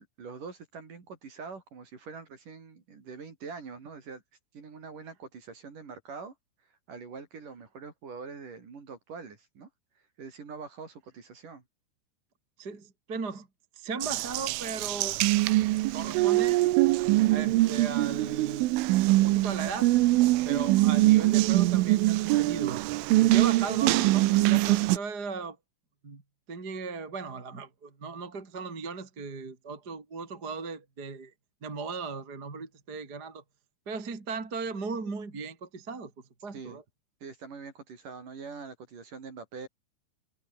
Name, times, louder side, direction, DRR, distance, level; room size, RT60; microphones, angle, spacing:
voice 1, 0.0-4.2 4.5-6.3 6.9-9.7 10.2-11.6 36.5-36.8 37.2-39.7, right 5 dB, 45° right, 4.9 m, -44 dB
voice 2, 12.6-13.5 13.7-15.2 15.9-16.7 17.0-18.7 19.2-19.9 20.4-22.8 23.2-25.6 26.0-26.2 26.5-31.3 31.6-33.4 33.8-36.1 36.4-36.8, right 4 dB, 20° right, 3.3 m, -37 dB
Water tap faucet, 14.0-25.0, right 18 dB, 85° right, 3.4 m, -23 dB
omnidirectional pair, 5.8 m